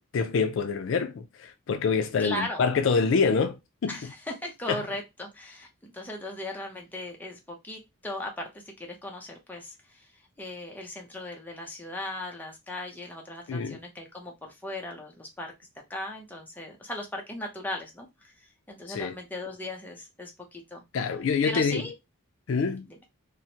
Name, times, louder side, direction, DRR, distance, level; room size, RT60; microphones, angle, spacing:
voice 1, 0.1-4.1 4.7-4.8 13.5-13.8 18.9-19.1 20.9-21.8 22.5-22.9, left 5 dB, 60° left, 0.4 m, -26 dB
voice 2, 2.2-2.6 3.9-10.1 10.4-15.5 15.9-18.3 18.7-20.8 21.4-21.9 22.9-23.0, left 1 dB, 10° left, 0.5 m, -38 dB
3.0 x 2.0 x 2.7 m
head